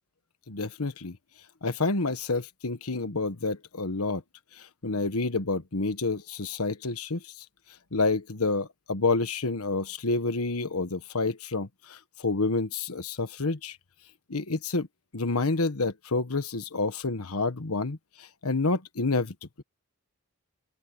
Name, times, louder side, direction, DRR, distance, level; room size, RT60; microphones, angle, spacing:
voice 1, 0.5-1.2 1.6-4.2 4.6-7.2 7.9-13.8 14.3-14.9 15.1-19.3, left 3 dB, 85° left, 1.3 m, -29 dB
open air
head